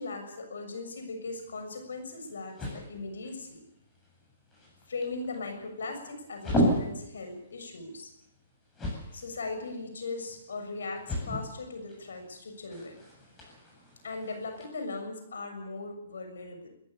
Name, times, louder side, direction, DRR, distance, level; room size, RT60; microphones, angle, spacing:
voice 1, 0.0-3.6 4.9-8.1 9.1-13.0 14.0-16.7, left 3 dB, 85° left, 6 dB, 6.8 m, -38 dB
sound 1, 1.3-14.7, equal, 15° left, 7.8 m, -36 dB
22.0 x 15.0 x 8.5 m, 0.80 s
hypercardioid pair, 155°, 0 cm